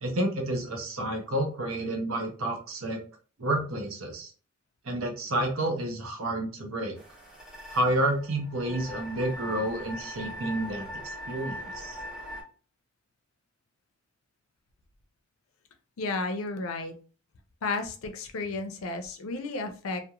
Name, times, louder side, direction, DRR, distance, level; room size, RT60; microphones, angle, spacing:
voice 1, 0.0-3.0 3.4-4.3 4.8-7.0 7.7-12.0, right 1 dB, 80° right, 3 dB, 0.7 m, -30 dB
sound 1, 7.0-12.4, left 1 dB, 5° right, 0.7 m, -41 dB
voice 2, 16.0-16.9 17.6-20.0, left 3 dB, 85° left, 7 dB, 0.5 m, -32 dB
2.3 x 2.1 x 2.8 m, 0.38 s
head